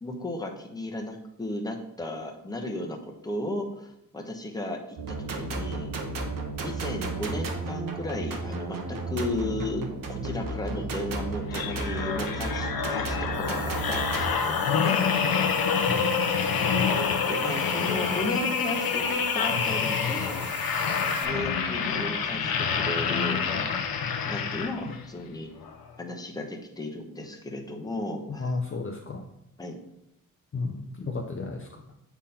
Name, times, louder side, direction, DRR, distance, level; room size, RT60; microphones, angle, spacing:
voice 1, 0.0-5.9 6.6-15.3 17.3-20.4 21.2-23.6 24.3-25.5 26.0-28.5 29.6-29.8, left 1 dB, 10° left, 1 dB, 0.9 m, -35 dB
sound 1, 5.0-14.3, right 3 dB, 70° right, 1.1 m, -33 dB
sound 2, 11.5-25.1 25.6-25.8, left 6 dB, 90° left, 0.8 m, -27 dB
sound 3, 13.3-21.3, right 4 dB, 35° right, 0.7 m, -43 dB
voice 2, 28.3-29.2 30.5-31.8, left 3 dB, 35° left, 2 dB, 0.6 m, -33 dB
8.2 x 3.8 x 4.3 m, 0.83 s
wide cardioid pair, 115°, 34 cm